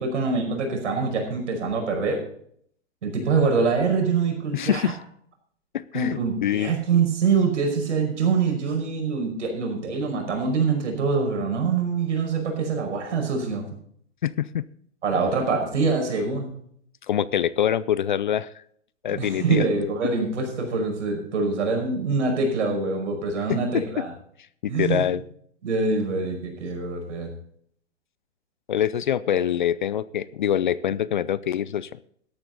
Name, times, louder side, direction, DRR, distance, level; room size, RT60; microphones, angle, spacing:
voice 1, 0.0-2.2 3.0-4.9 5.9-13.7 15.0-16.5 19.1-24.1 24.6-25.0 25.6-27.3, right 4 dB, 70° right, 3 dB, 5.5 m, -24 dB
voice 2, 4.5-5.0 5.7-6.7 14.2-14.7 17.1-18.5 19.0-19.7 23.5-24.0 24.6-25.2 28.7-31.9, left 10 dB, 45° left, 19 dB, 0.4 m, -25 dB
13.5 x 11.5 x 4.0 m, 0.63 s
hypercardioid pair, 160°, 37 cm